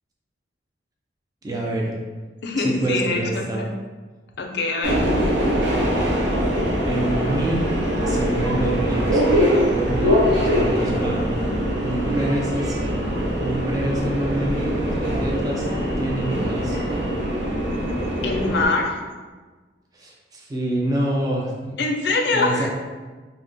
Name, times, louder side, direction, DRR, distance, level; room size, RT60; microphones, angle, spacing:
voice 1, 1.4-1.9 2.6-3.6 6.9-7.7 8.0-9.2 9.5-11.3 11.8-12.7 13.4-15.7 16.0-16.8 19.9-21.8 22.3-22.7, right 1 dB, 20° right, -2 dB, 0.3 m, -26 dB
voice 2, 2.4-3.7 4.4-5.1 18.2-19.0 21.8-22.7, left 3 dB, 60° left, 2 dB, 0.4 m, -23 dB
Subway metro underground, 4.8-18.7, equal, 70° right, 0.7 m, -22 dB
2.8 x 2.0 x 3.8 m, 1.3 s
head